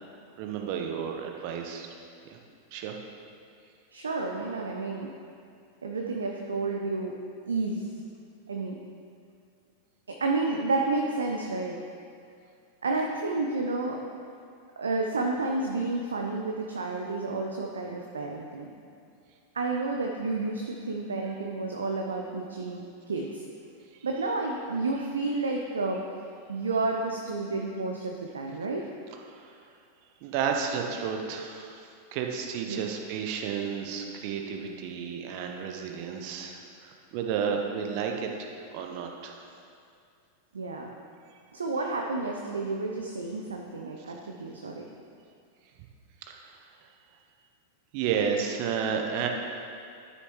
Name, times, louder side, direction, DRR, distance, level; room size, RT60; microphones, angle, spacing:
voice 1, 0.4-1.9 2.2-2.4 2.7-3.0 29.3-29.6 30.2-39.5 46.2-46.5 47.9-49.3, right 7 dB, 45° right, 3 dB, 0.8 m, -32 dB
voice 2, 3.9-5.1 5.8-7.2 7.5-7.9 8.5-8.8 10.1-11.8 12.8-14.0 14.8-18.7 19.5-23.4 24.0-26.0 26.5-28.9 32.7-32.9 40.5-40.9 41.5-44.9, right 3 dB, 70° right, 1 dB, 0.6 m, -30 dB
12.5 x 6.4 x 3.1 m, 2.4 s
figure-of-eight pair, 90°, 0 cm